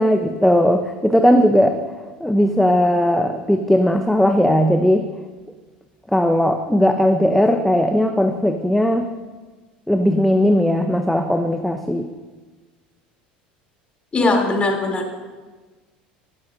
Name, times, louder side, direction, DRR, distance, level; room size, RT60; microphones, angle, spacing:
voice 1, 0.0-1.8 2.2-5.1 6.1-9.1 9.9-12.1, equal, 5° left, 6 dB, 0.9 m, -17 dB
voice 2, 14.1-15.2, left 2 dB, 25° left, 1 dB, 3.5 m, -20 dB
17.5 x 14.5 x 2.8 m, 1.3 s
figure-of-eight pair, 75°, 5 cm